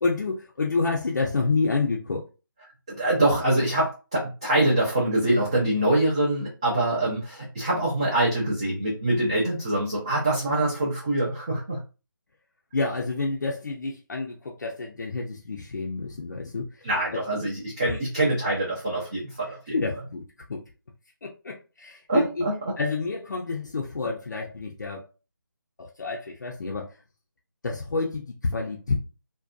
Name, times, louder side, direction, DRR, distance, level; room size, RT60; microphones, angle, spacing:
voice 1, 0.0-2.2 12.7-16.7 17.1-17.2 17.9-18.0 19.7-20.2 20.5-20.6 21.2-22.4 22.8-25.1 25.8-26.9 27.6-28.9, left 3 dB, 55° left, 0.5 m, -28 dB
voice 2, 2.9-11.8 16.8-19.7 22.1-22.7, right 1 dB, 15° right, 0.4 m, -24 dB
2.5 x 2.2 x 2.3 m
figure-of-eight pair, 165°, 12 cm